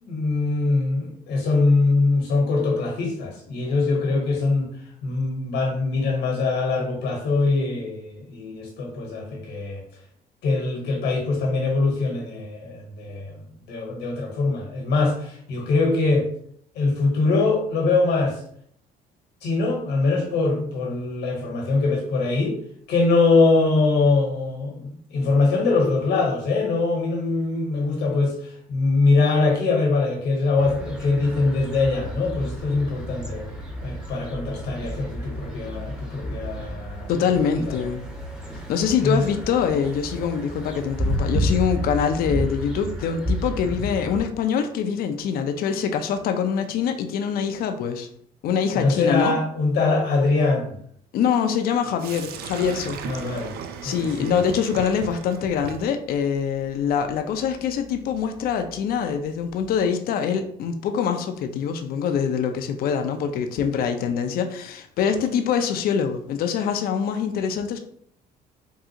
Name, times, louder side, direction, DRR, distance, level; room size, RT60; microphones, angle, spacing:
voice 1, 0.0-4.7 5.0-9.8 10.4-13.4 13.7-16.3 16.7-18.4 19.4-22.6 22.9-33.4 33.8-37.1 37.5-37.8 39.0-39.3 48.7-50.7 53.0-53.5 53.8-54.4, left 3 dB, 75° left, 0 dB, 1.1 m, -23 dB
sound 1, 30.6-44.2, equal, 5° right, 0.7 m, -31 dB
voice 2, 37.1-38.0 38.7-48.1 48.4-49.4 51.1-53.0 53.8-67.8, left 7 dB, 60° left, 6 dB, 0.4 m, -24 dB
Sink (filling or washing), 52.0-59.9, right 7 dB, 65° right, 0.4 m, -39 dB
3.6 x 2.4 x 2.8 m, 0.65 s
cardioid pair, 110°, 17 cm